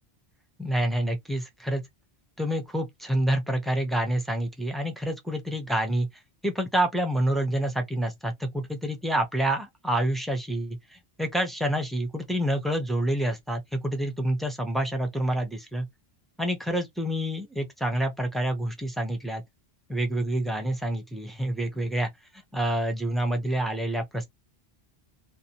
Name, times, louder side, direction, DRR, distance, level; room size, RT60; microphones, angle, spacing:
voice 1, 0.6-1.8 2.4-6.1 6.4-15.9 16.4-19.4 19.9-22.1 22.5-24.3, right 1 dB, ahead, 0.4 m, -28 dB
2.7 x 2.0 x 2.8 m
omnidirectional pair, 1.1 m